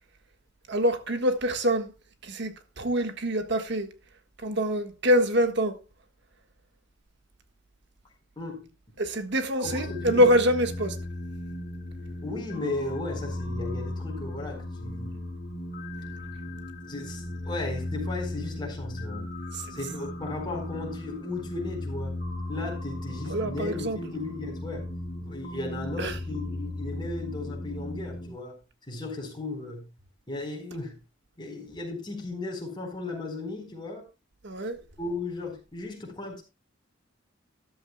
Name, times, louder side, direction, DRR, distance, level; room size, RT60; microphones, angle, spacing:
voice 1, 0.7-1.9 2.2-3.9 4.4-5.8 9.0-11.0 23.3-24.0 26.0-26.2 34.4-34.8, equal, 60° right, 1.5 m, -25 dB
voice 2, 8.4-8.7 9.6-10.3 12.2-15.1 16.9-19.3 19.7-22.1 22.5-24.9 25.2-28.6 28.8-29.9 30.3-31.0 31.4-34.0 35.0-36.4, left 2 dB, 25° left, 4.2 m, -36 dB
sound 1, 9.6-28.3, left 1 dB, 40° left, 4.7 m, -36 dB
13.5 x 12.0 x 2.2 m
head